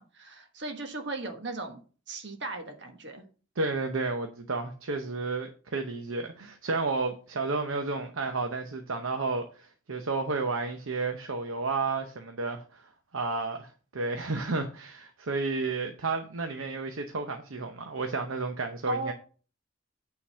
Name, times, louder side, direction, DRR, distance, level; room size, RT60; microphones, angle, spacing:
voice 1, 0.0-1.8 2.1-3.2 18.9-19.1, right 2 dB, 55° right, 1.4 m, -36 dB
voice 2, 3.6-19.1, right 3 dB, 80° right, 0.8 m, -32 dB
8.8 x 3.9 x 5.5 m
head